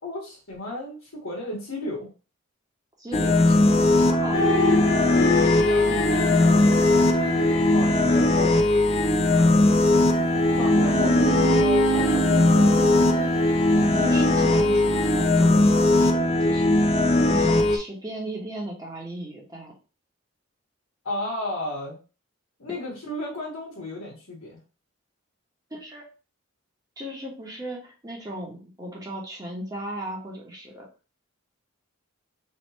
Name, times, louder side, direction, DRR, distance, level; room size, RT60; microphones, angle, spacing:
voice 1, 0.0-2.1 5.2-8.6 9.3-9.7 10.1-10.3 10.6-13.0 21.0-22.0 22.6-24.6, left 1 dB, 80° left, -4 dB, 1.4 m, -34 dB
voice 2, 3.0-4.7 13.7-16.9 17.2-19.7 25.7-26.1 27.0-30.8, right 1 dB, 15° right, -3 dB, 1.0 m, -36 dB
sound 1, 3.1-17.8, left 2 dB, 30° left, 0.3 m, -19 dB
sound 2, 4.3-9.1 10.0-15.2, left 1 dB, 65° left, 0.9 m, -29 dB
3.2 x 2.8 x 4.1 m, 0.34 s
head